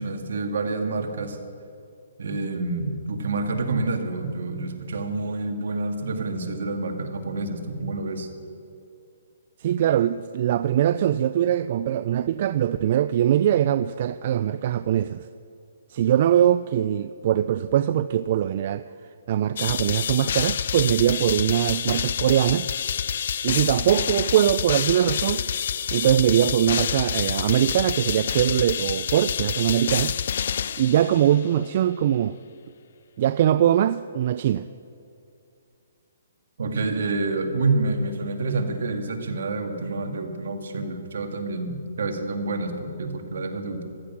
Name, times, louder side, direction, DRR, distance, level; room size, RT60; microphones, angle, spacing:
voice 1, 0.0-1.4 2.2-8.3 36.6-43.8, right 3 dB, 70° right, 5 dB, 2.0 m, -28 dB
voice 2, 9.6-15.3 15.9-18.9 19.3-22.7 23.4-25.4 25.9-30.2 30.8-32.4 33.2-34.7, right 11 dB, 45° right, 14 dB, 0.3 m, -22 dB
sound 1, 19.6-31.5, left 8 dB, 55° left, 0.4 m, -27 dB
15.0 x 13.0 x 6.0 m, 2.6 s
hypercardioid pair, 160°, 0 cm